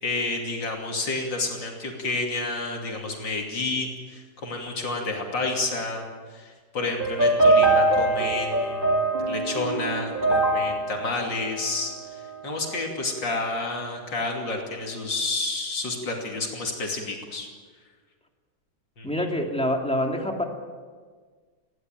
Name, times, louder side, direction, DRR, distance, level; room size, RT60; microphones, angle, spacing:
voice 1, 0.0-17.5 19.0-19.3, left 3 dB, 90° left, 1 dB, 3.5 m, -30 dB
sound 1, 7.0-12.3, right 2 dB, 30° right, 4.6 m, -23 dB
voice 2, 19.0-20.4, left 1 dB, 5° left, 1 dB, 2.5 m, -26 dB
21.0 x 16.5 x 9.1 m, 1.5 s
omnidirectional pair, 1.9 m